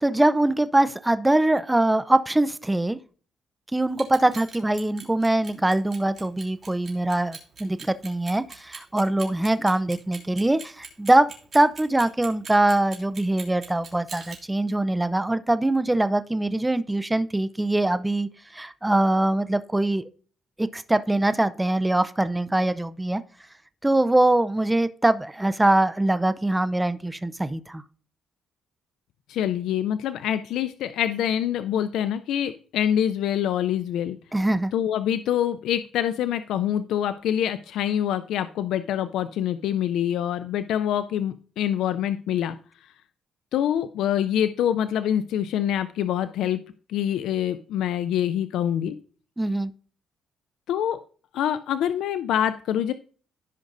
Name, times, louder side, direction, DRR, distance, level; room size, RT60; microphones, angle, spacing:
voice 1, 0.0-3.0 3.7-20.0 20.6-23.2 23.8-27.8 34.3-34.7 49.4-49.7, right 1 dB, 10° right, 13 dB, 0.5 m, -23 dB
Clock, 3.9-14.4, right 5 dB, 45° right, 3.1 m, -41 dB
voice 2, 29.3-34.2 34.7-42.6 43.5-46.6 46.9-49.0 50.7-51.0 51.3-52.9, left 10 dB, 85° left, 12 dB, 0.4 m, -25 dB
15.5 x 5.3 x 2.6 m, 0.42 s
cardioid pair, 90°, 0 cm